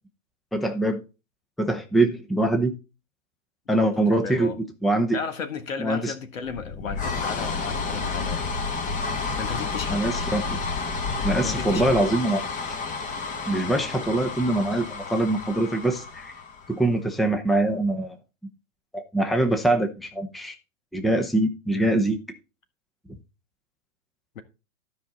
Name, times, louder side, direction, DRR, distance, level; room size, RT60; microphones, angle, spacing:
voice 1, 0.5-1.0 1.6-2.7 3.7-4.5 4.8-5.2 5.8-6.1 9.9-10.6 11.2-12.7 13.5-16.3 16.7-18.2 18.9-20.6 20.9-22.2, right 1 dB, ahead, 0.7 m, -23 dB
voice 2, 3.8-4.6 5.1-8.4 9.4-10.0 11.4-11.9 24.3-24.4, left 5 dB, 70° left, 1.7 m, -34 dB
sound 1, 6.4-17.0, left 4 dB, 20° left, 1.3 m, -30 dB
12.5 x 5.3 x 4.0 m
figure-of-eight pair, 115°, 41 cm